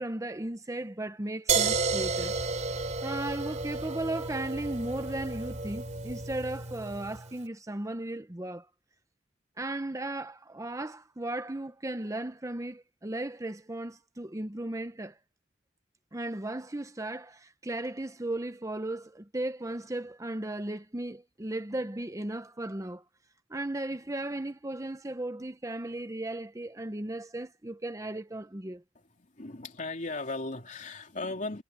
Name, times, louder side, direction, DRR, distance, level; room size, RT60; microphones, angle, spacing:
voice 1, 0.0-2.4 3.0-8.7 9.6-15.2 16.1-23.0 23.5-28.8, right 1 dB, 20° right, 0.9 m, -36 dB
sound 1, 1.5-7.3, right 4 dB, 45° right, 3.3 m, -32 dB
voice 2, 28.9-31.6, left 2 dB, 45° left, 3.3 m, -37 dB
head